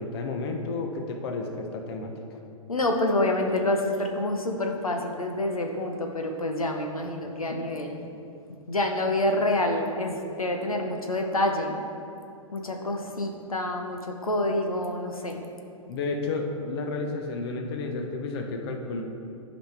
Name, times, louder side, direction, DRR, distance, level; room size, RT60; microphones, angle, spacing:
voice 1, 0.0-2.1 15.9-19.0, left 3 dB, 45° left, 4 dB, 0.9 m, -31 dB
voice 2, 2.7-8.0 8.7-11.7 12.5-15.4, left 1 dB, 85° left, 3 dB, 0.8 m, -27 dB
11.5 x 5.2 x 3.3 m, 2.6 s
figure-of-eight pair, 110°, 18 cm